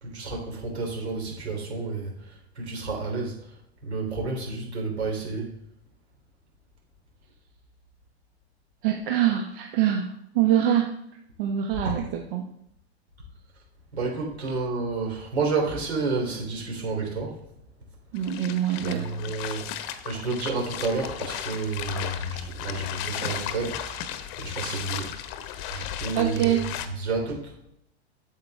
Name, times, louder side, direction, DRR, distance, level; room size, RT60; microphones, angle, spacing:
voice 1, 0.0-3.6 3.8-5.5 11.8-12.0 13.9-17.4 18.8-19.7 20.1-25.1 25.7-27.5, right 3 dB, 75° right, -1 dB, 3.5 m, -30 dB
voice 2, 8.8-10.1 10.3-10.9 11.4-12.4 18.1-19.3 26.1-26.7, right 10 dB, 55° right, 3 dB, 1.1 m, -24 dB
sound 1, 18.2-26.9, left 10 dB, 45° left, 0.9 m, -35 dB
8.5 x 7.3 x 3.5 m, 0.76 s
hypercardioid pair, 100°, 32 cm